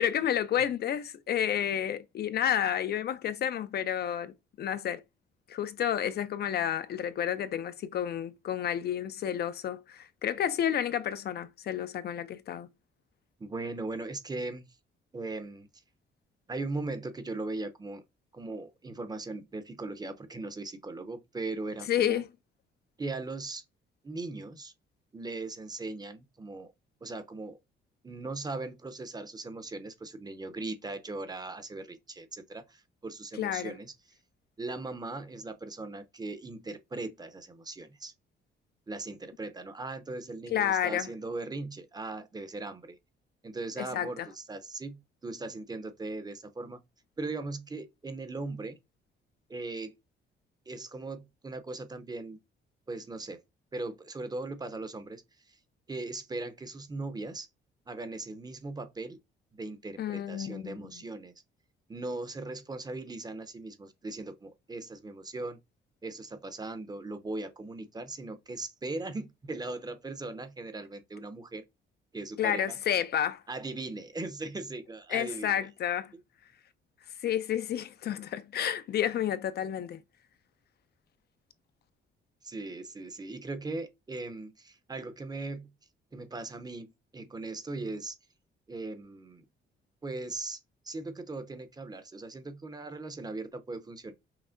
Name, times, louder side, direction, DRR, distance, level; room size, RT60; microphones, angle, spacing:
voice 1, 0.0-5.0 5.5-12.7 21.9-22.3 33.4-33.7 40.5-41.1 43.8-44.3 60.0-60.9 72.4-73.4 75.1-76.1 77.2-80.0, left 10 dB, 55° left, 0.4 m, -30 dB
voice 2, 13.4-14.7 15.1-15.7 16.5-18.0 18.3-22.2 23.0-23.6 24.0-24.7 25.1-26.7 27.0-27.6 28.0-33.9 34.6-38.1 38.9-43.0 43.4-46.8 47.2-48.8 49.5-49.9 50.7-52.4 52.9-53.4 53.7-55.2 55.5-55.6 55.9-57.5 57.9-59.2 59.5-61.3 61.9-65.6 66.0-71.6 72.1-72.8 73.5-75.7 82.4-85.7 86.1-88.1 88.7-89.5 90.0-90.6 90.8-94.1, right 2 dB, 20° right, 0.7 m, -39 dB
5.7 x 2.1 x 2.5 m
cardioid pair, 90°, 20 cm